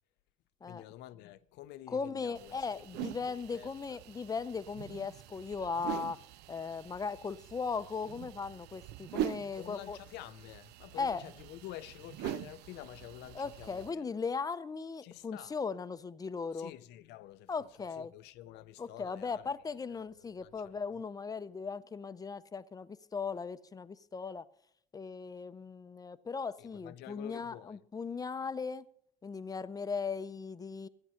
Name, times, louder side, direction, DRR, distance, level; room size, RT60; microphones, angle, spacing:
voice 1, 0.6-2.8 3.2-4.0 9.1-9.2 9.5-14.2 15.0-15.6 16.5-19.5 19.9-20.9 26.6-27.8, left 14 dB, 90° left, 0.6 m, -49 dB
voice 2, 1.9-6.2 6.5-10.0 11.0-11.2 13.3-16.7 17.5-18.1 18.8-24.5 24.9-28.8 29.2-30.9, left 5 dB, 20° left, 0.5 m, -38 dB
sound 1, 2.3-13.9, right 12 dB, 80° right, 0.4 m, -43 dB
14.0 x 9.6 x 5.7 m
cardioid pair, 110°, 17 cm